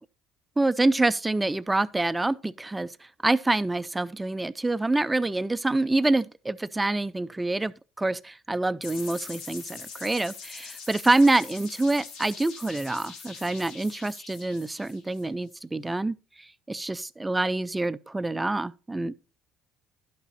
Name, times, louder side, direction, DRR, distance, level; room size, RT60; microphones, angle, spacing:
voice 1, 0.6-2.9 3.2-16.1 16.7-19.1, right 2 dB, 10° right, 0.3 m, -26 dB
sound 1, 8.8-15.5, left 5 dB, 70° left, 2.3 m, -43 dB
11.0 x 5.6 x 4.1 m
cardioid pair, 135°, 0 cm